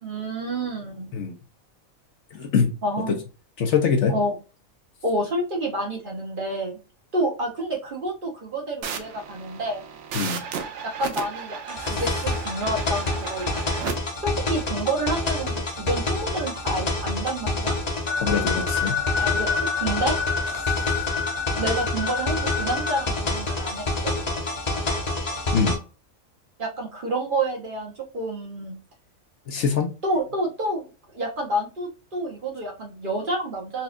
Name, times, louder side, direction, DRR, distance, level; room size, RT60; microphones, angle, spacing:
voice 1, 0.0-1.1 2.8-3.2 4.1-4.3 5.0-6.8 7.1-9.8 10.8-13.7 14.2-17.7 19.2-19.5 19.7-20.1 21.5-24.1 26.6-28.7 30.0-30.8 31.1-33.8, right 1 dB, 45° right, 0 dB, 1.0 m, -29 dB
voice 2, 2.3-2.7 3.1-3.2 3.6-4.1 10.1-10.4 11.8-12.0 18.2-19.0 25.5-25.8 29.5-29.9, left 6 dB, 65° left, 4 dB, 0.9 m, -23 dB
sound 1, 8.8-13.9, right 6 dB, 70° right, 0.9 m, -34 dB
sound 2, 11.7-25.7, left 2 dB, 35° left, 0.8 m, -28 dB
sound 3, 18.1-23.1, left 6 dB, 85° left, 1.1 m, -28 dB
4.2 x 2.3 x 2.4 m, 0.32 s
omnidirectional pair, 1.4 m